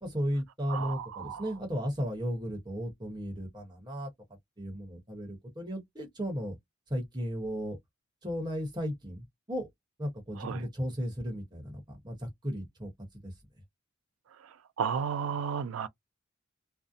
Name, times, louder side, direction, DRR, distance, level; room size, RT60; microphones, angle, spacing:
voice 1, 0.0-4.1 4.6-6.6 6.9-7.8 8.2-9.7 10.0-12.9 13.2-13.3, equal, 20° right, 0.9 m, -35 dB
voice 2, 0.7-1.4 10.4-10.6 14.8-15.9, right 7 dB, 80° right, 0.3 m, -33 dB
2.6 x 2.0 x 2.4 m
head